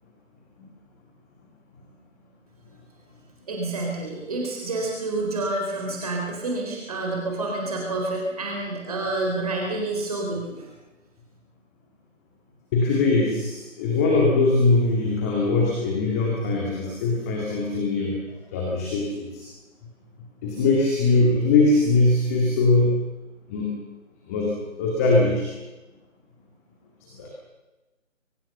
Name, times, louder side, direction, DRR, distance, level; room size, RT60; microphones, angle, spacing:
voice 1, 3.5-10.7, right 2 dB, 30° right, -1 dB, 4.1 m, -28 dB
voice 2, 12.7-18.2 18.5-19.5 20.4-23.0 23.5-23.7 24.3-24.5 24.8-25.5 27.2-27.3, left 3 dB, 10° left, -2 dB, 2.3 m, -21 dB
24.0 x 20.0 x 6.9 m, 1.1 s
figure-of-eight pair, 155°, 39 cm